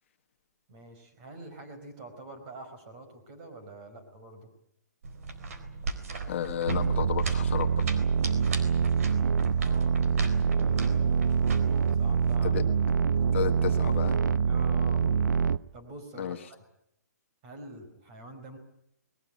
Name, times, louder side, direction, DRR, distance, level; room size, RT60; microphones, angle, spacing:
voice 1, 0.7-4.5 9.5-10.0 10.5-11.3 12.0-12.6 14.5-15.1 15.7-16.6 17.4-18.6, right 2 dB, 25° right, 6 dB, 5.2 m, -46 dB
sound 1, 5.0-12.4, right 4 dB, 55° right, 4.0 m, -39 dB
voice 2, 6.3-8.0 12.4-12.6 13.3-14.2 16.2-16.4, left 9 dB, 40° left, 7 dB, 1.4 m, -32 dB
sound 2, 6.7-15.6, right 6 dB, 85° right, 0.9 m, -25 dB
21.0 x 21.0 x 9.1 m, 0.75 s
hypercardioid pair, 170°, 10 cm